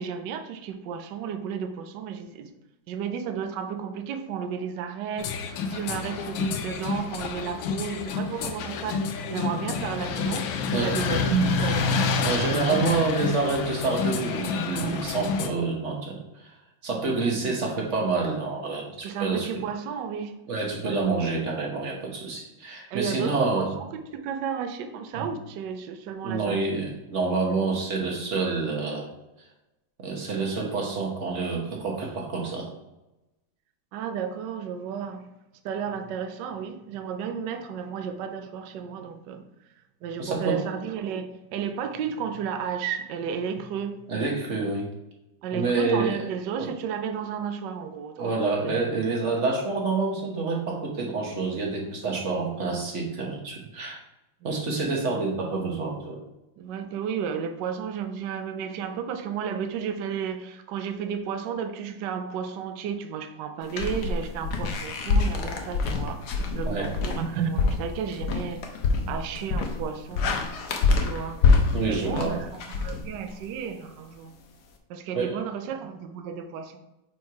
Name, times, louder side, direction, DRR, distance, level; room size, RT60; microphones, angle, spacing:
voice 1, 0.0-2.5 2.9-11.9 12.5-12.9 19.0-20.4 22.9-26.8 27.5-27.7 33.9-35.3 35.6-39.4 40.0-44.0 45.4-48.9 54.4-54.5 56.6-66.2 66.5-68.6 69.1-70.3 71.0-71.4 71.9-74.3 74.9-76.8, right 7 dB, 70° right, 7 dB, 1.2 m, -33 dB
sound 1, 5.2-15.5, left 5 dB, 80° left, 1.4 m, -29 dB
voice 2, 12.2-16.5 16.8-19.5 20.5-23.7 25.1-25.3 26.2-29.1 30.0-32.7 40.2-40.6 44.1-44.9 45.5-46.2 46.6-46.7 48.2-54.0 54.4-56.2 66.6-66.9 71.7-72.4 75.1-75.4, right 3 dB, 45° right, -1 dB, 1.2 m, -27 dB
sound 2, 63.7-73.6, left 4 dB, 65° left, 1.2 m, -26 dB
4.7 x 4.4 x 4.6 m, 0.95 s
omnidirectional pair, 2.1 m